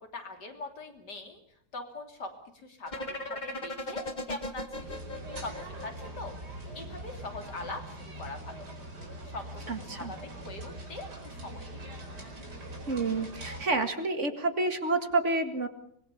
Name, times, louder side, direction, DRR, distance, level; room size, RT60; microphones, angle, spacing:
voice 1, 0.1-1.4 1.7-5.0 5.3-6.3 6.7-8.7 9.3-9.5 9.8-11.9, left 3 dB, 85° left, 5 dB, 3.7 m, -42 dB
sound 1, 2.9-6.8, left 1 dB, 25° left, 1.8 m, -38 dB
sound 2, 4.8-13.7, right 1 dB, 80° right, 5.2 m, -42 dB
voice 2, 9.7-10.1 12.9-15.7, right 3 dB, 45° right, 8 dB, 2.2 m, -29 dB
25.0 x 21.0 x 6.9 m, 0.64 s
omnidirectional pair, 1.8 m